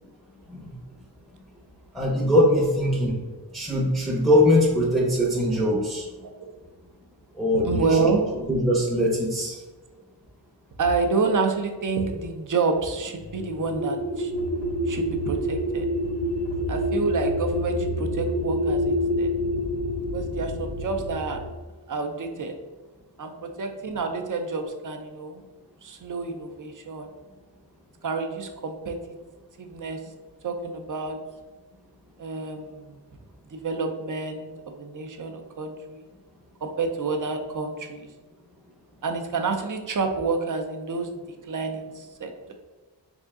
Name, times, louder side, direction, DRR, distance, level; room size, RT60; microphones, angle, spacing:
voice 1, 1.9-3.1 3.5-6.1 7.4-8.0 8.5-9.6, left 1 dB, ahead, -3 dB, 0.6 m, -21 dB
voice 2, 7.5-8.4 10.8-14.3 14.9-15.9 16.5-19.3 20.1-21.4 21.9-22.5 23.2-25.4 25.8-27.1 28.0-29.0 29.6-30.0 30.4-31.2 32.2-33.0 33.5-34.5 34.8-36.0 36.6-38.1 39.0-41.2 41.5-42.5, right 4 dB, 50° right, 5 dB, 0.5 m, -28 dB
sound 1, 13.2-21.5, equal, 70° left, 0.8 m, -27 dB
3.5 x 2.6 x 3.5 m, 1.2 s
wide cardioid pair, 95°, 43 cm